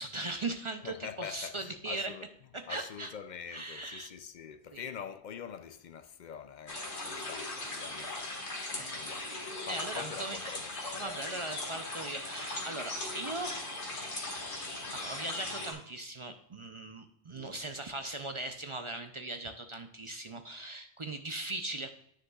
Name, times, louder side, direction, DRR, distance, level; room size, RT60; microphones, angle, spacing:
voice 1, 0.0-2.1 2.5-3.1 3.5-4.1 4.7-4.8 8.8-9.0 9.7-10.5 10.9-13.5 14.2-14.3 14.9-21.9, right 2 dB, 40° right, 0.4 m, -39 dB
voice 2, 0.8-2.3 2.7-9.3 9.7-11.1 17.3-17.6, left 8 dB, 60° left, 0.5 m, -45 dB
sound 1, 6.7-15.7, left 2 dB, 80° left, 2.1 m, -39 dB
9.6 x 6.4 x 2.3 m
omnidirectional pair, 1.1 m